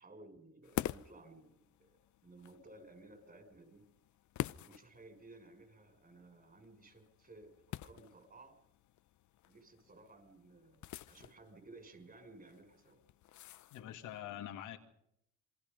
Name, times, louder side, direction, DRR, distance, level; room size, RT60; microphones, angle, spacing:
voice 1, 0.0-3.8 4.6-8.6 9.4-13.0, right 2 dB, 30° right, 7 dB, 6.4 m, -57 dB
sound 1, 0.6-14.2, left 13 dB, 70° left, 0.8 m, -48 dB
voice 2, 13.7-14.8, left 11 dB, 90° left, 5 dB, 2.3 m, -45 dB
27.5 x 22.5 x 5.5 m, 0.75 s
cardioid pair, 90°, 30 cm